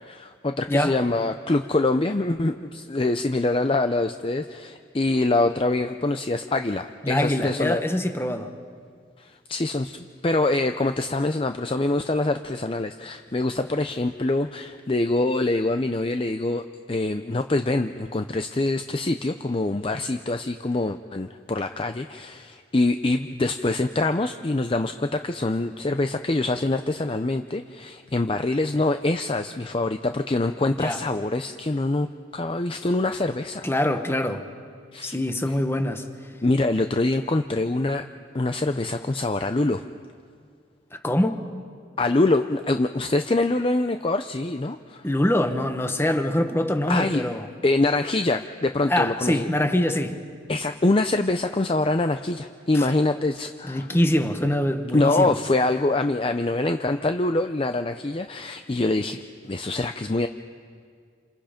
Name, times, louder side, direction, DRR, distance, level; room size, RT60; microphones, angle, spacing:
voice 1, 0.0-7.8 9.2-32.1 32.3-33.7 34.9-35.1 36.4-38.1 38.3-39.8 42.0-45.0 46.9-47.3 47.6-49.5 50.5-53.9 54.9-60.3, left 2 dB, 30° left, 8 dB, 0.5 m, -24 dB
voice 2, 7.0-8.5 30.7-31.0 33.6-34.4 35.0-36.0 40.9-41.5 45.0-47.5 48.9-50.2 52.7-52.9 53.7-55.4, left 1 dB, 15° left, 7 dB, 1.2 m, -24 dB
28.5 x 28.0 x 5.1 m, 2.1 s
head